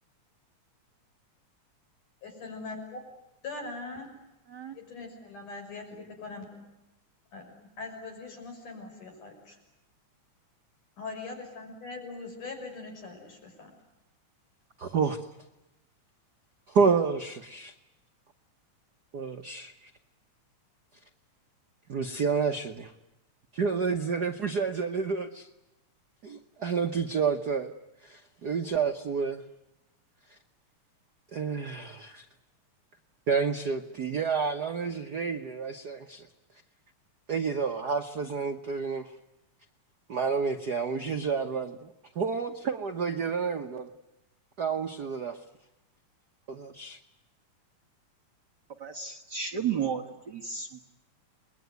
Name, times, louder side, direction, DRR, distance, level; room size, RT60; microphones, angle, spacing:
voice 1, 2.2-3.0 3.4-4.1 4.7-6.7 7.3-9.6 11.0-13.7, left 3 dB, 85° left, 3 dB, 7.7 m, -41 dB
voice 2, 14.8-15.3 16.7-17.7 19.1-19.9 21.9-22.9 23.5-25.5 26.2-27.7 28.0-29.4 31.3-32.2 33.3-36.3 37.3-39.1 40.1-43.9 44.6-45.4 46.5-47.0, right 5 dB, 75° right, 6 dB, 0.9 m, -29 dB
voice 3, 48.8-50.9, right 7 dB, 45° right, 2 dB, 1.6 m, -33 dB
29.0 x 21.5 x 9.4 m, 0.97 s
omnidirectional pair, 3.5 m